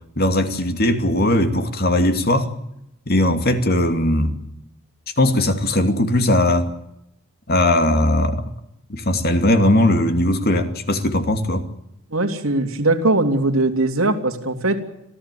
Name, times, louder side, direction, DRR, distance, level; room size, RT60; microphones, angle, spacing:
voice 1, 0.2-2.5 3.1-4.4 5.2-6.7 7.5-8.5 8.9-11.7, left 1 dB, 45° left, 2.6 m, -19 dB
voice 2, 12.1-14.8, right 2 dB, 70° right, 3.2 m, -20 dB
27.0 x 16.0 x 8.5 m
head